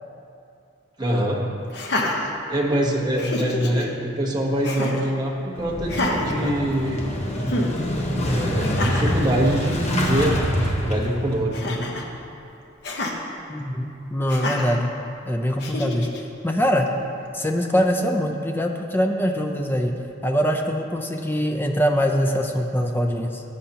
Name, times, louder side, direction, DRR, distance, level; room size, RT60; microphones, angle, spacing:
voice 1, 1.0-1.4 2.2-7.0 7.4-7.5 7.9-11.6, right 1 dB, 20° right, -2 dB, 1.1 m, -24 dB
Laughter, 1.7-2.8 3.2-3.9 4.6-5.1 5.8-7.1 7.5-7.7 8.6-9.2 9.7-9.8 10.0-10.4 11.5-12.1 12.8-13.2 14.3-14.8 15.6-16.2, left 1 dB, 60° left, 1.0 m, -28 dB
Motorcycle / Engine starting, 5.5-11.4, equal, 35° left, 1.1 m, -26 dB
voice 2, 13.5-14.9 15.3-16.1 16.4-16.9 17.3-19.9 20.2-23.4, equal, 10° left, 3 dB, 0.6 m, -23 dB
16.5 x 7.9 x 2.9 m, 2.7 s
head